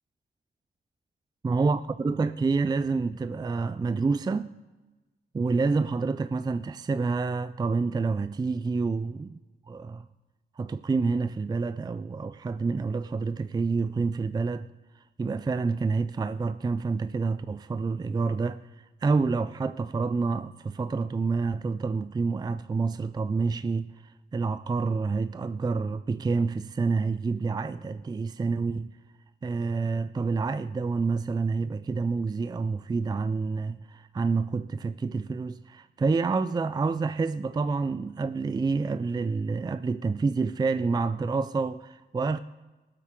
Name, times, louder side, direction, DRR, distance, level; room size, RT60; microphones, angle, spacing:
voice 1, 1.4-4.5 5.3-9.4 9.7-10.1 10.6-14.7 15.2-18.6 19.0-23.9 24.3-28.9 29.4-42.4, right 4 dB, 25° right, 0.4 m, -28 dB
19.0 x 8.5 x 3.7 m
cardioid pair, 80°, 18 cm